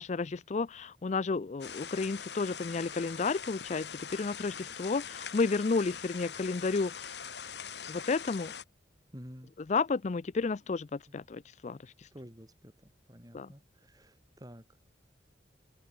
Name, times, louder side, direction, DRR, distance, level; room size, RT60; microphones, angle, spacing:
voice 1, 0.0-7.1 7.9-8.5 9.7-11.8 13.3-13.5, left 4 dB, 40° left, 0.4 m, -32 dB
sound 1, 1.6-8.6, left 7 dB, 75° left, 2.6 m, -43 dB
voice 2, 9.1-9.5 11.1-11.2 12.1-14.7, equal, 20° right, 6.6 m, -50 dB
open air
head